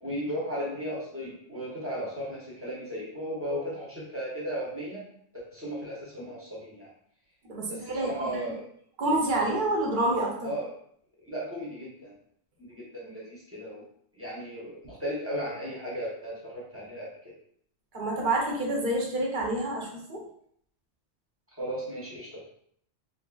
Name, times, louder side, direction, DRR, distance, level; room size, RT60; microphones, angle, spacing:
voice 1, 0.0-5.0 5.3-6.9 7.7-8.6 10.4-10.7 11.2-12.1 12.6-13.8 14.1-17.1 21.6-22.5, equal, 15° right, -7 dB, 0.7 m, -35 dB
voice 2, 7.4-8.4 9.0-10.5 17.9-20.2, right 1 dB, 50° right, -2 dB, 0.8 m, -28 dB
2.7 x 2.7 x 2.3 m, 0.66 s
omnidirectional pair, 1.3 m